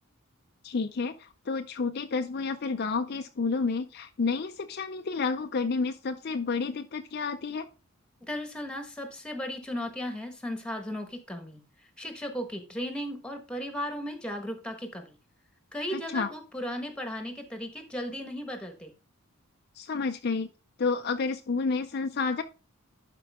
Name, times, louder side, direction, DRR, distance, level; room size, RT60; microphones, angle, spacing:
voice 1, 0.6-7.7 15.9-16.3 19.8-20.5 20.8-22.4, left 4 dB, 45° left, 7 dB, 0.4 m, -30 dB
voice 2, 8.2-11.6 12.0-15.1 15.7-18.9, equal, 5° left, 6 dB, 1.3 m, -36 dB
11.5 x 4.6 x 3.5 m, 0.32 s
head